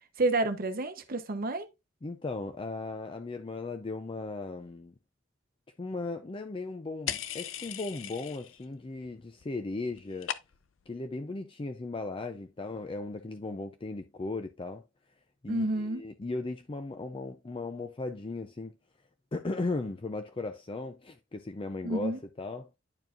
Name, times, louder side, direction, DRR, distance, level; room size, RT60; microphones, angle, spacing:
voice 1, 0.2-1.7 15.5-16.0 21.8-22.2, right 2 dB, 50° right, 0.9 m, -29 dB
voice 2, 2.0-4.9 5.8-10.3 10.9-14.8 15.4-18.8 19.3-22.7, left 3 dB, 25° left, 0.5 m, -37 dB
sound 1, 7.1-8.7 9.0-9.5 9.7-10.8, left 10 dB, 90° left, 0.6 m, -38 dB
10.5 x 4.7 x 2.5 m
head